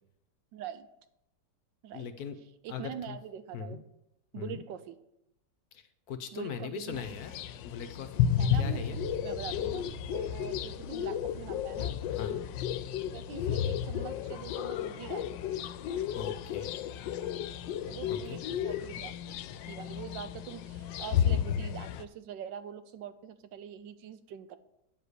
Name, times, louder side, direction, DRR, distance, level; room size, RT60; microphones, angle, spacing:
voice 1, 0.5-0.9 1.8-2.1 2.4-3.8 4.3-5.0 6.3-7.1 8.4-8.9 9.2-12.0 13.1-15.4 17.9-24.6, right 9 dB, 85° right, 12 dB, 1.4 m, -44 dB
voice 2, 1.9-2.4 2.7-2.8 3.1-3.2 3.5-3.8 4.4-4.6 6.1-7.3 7.6-8.3 8.6-9.0 12.1-12.4 16.1-16.8 18.1-18.4, left 7 dB, 65° left, 9 dB, 1.1 m, -40 dB
sound 1, 6.9-22.0, left 9 dB, 85° left, 1.3 m, -33 dB
sound 2, 8.9-17.9, right 11 dB, 45° right, 0.7 m, -52 dB
9.7 x 5.0 x 8.0 m, 0.82 s
omnidirectional pair, 2.0 m